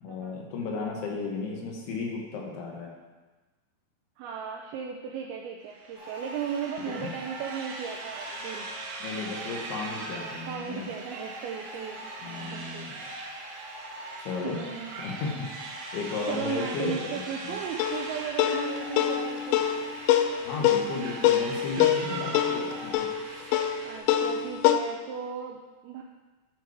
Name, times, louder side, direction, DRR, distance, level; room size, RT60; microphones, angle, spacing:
voice 1, 0.0-2.9 6.9-7.1 9.0-10.9 12.2-13.0 14.2-14.6 15.0-15.5 15.9-17.6 20.4-23.6, left 4 dB, 70° left, 0 dB, 3.0 m, -34 dB
voice 2, 4.2-8.7 10.1-12.9 14.4-14.9 16.3-19.7 23.8-26.0, right 7 dB, 90° right, 0 dB, 2.2 m, -36 dB
sound 1, 5.7-24.0, right 3 dB, 70° right, 2.8 m, -41 dB
sound 2, 5.9-22.9, equal, 45° left, 2.7 m, -45 dB
sound 3, 17.8-24.8, left 10 dB, 90° left, 2.8 m, -25 dB
11.0 x 4.6 x 4.7 m, 1.2 s
omnidirectional pair, 5.0 m